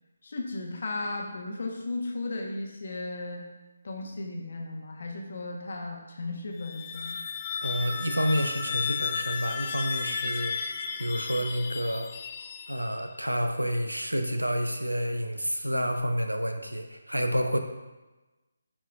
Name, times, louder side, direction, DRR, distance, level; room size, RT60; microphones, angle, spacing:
voice 1, 0.2-3.5 3.8-7.2, left 2 dB, 50° left, 1 dB, 1.1 m, -35 dB
sound 1, 6.5-13.2, left 6 dB, 30° left, 0.4 m, -34 dB
voice 2, 7.6-10.5 11.0-12.1 12.7-17.6, equal, 85° right, 5 dB, 0.7 m, -29 dB
9.8 x 4.6 x 2.3 m, 1.1 s
figure-of-eight pair, 150°, 0 cm